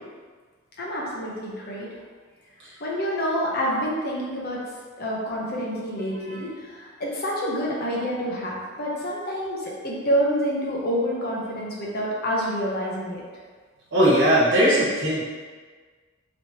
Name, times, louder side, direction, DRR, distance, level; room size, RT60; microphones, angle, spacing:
voice 1, 0.8-2.0 2.8-4.6 5.0-13.2, equal, 50° left, -4 dB, 0.8 m, -27 dB
voice 2, 13.9-15.2, equal, 65° right, -8 dB, 1.3 m, -19 dB
3.2 x 2.9 x 2.8 m, 1.5 s
head